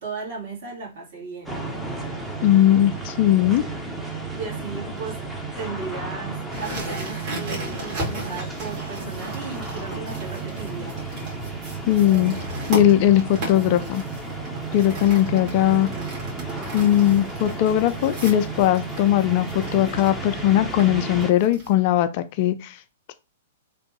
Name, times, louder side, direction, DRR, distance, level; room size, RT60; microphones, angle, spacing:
voice 1, 0.0-1.6 4.3-5.2 5.6-11.0 15.3-16.1, right 4 dB, 60° right, 1.9 m, -36 dB
sound 1, 1.5-21.3, right 3 dB, ahead, 0.7 m, -33 dB
voice 2, 2.4-3.6 11.9-12.3 12.7-14.0 14.7-15.9 16.7-22.8 23.1-23.2, left 12 dB, 45° left, 0.4 m, -19 dB
sound 2, 6.5-21.7, right 1 dB, 40° right, 1.9 m, -37 dB
3.3 x 2.6 x 3.0 m
figure-of-eight pair, 110°, 0 cm